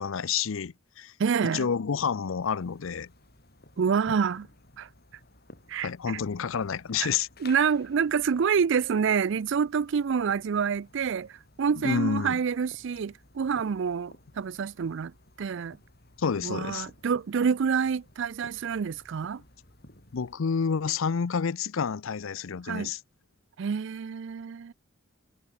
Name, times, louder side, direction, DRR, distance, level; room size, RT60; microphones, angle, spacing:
voice 1, 0.0-1.1 1.4-3.1 5.8-7.3 11.8-12.4 16.2-16.9 20.1-23.0, left 6 dB, 70° left, 0.5 m, -29 dB
voice 2, 1.2-1.7 3.8-4.5 4.8-4.9 5.7-6.2 7.0-7.1 7.4-15.1 15.4-15.8 16.4-19.4 22.7-22.9 23.6-24.7, right 6 dB, 60° right, 0.4 m, -27 dB
sound 1, 2.4-20.4, left 2 dB, 50° left, 4.6 m, -55 dB
head